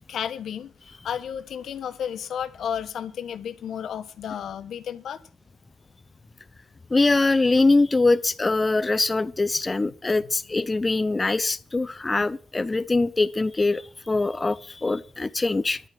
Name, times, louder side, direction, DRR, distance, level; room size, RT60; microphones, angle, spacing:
voice 1, 0.1-5.2, left 8 dB, 80° left, 1.3 m, -32 dB
voice 2, 6.9-15.8, left 3 dB, 30° left, 0.8 m, -23 dB
11.5 x 9.2 x 7.7 m
supercardioid pair, 55°, 0 cm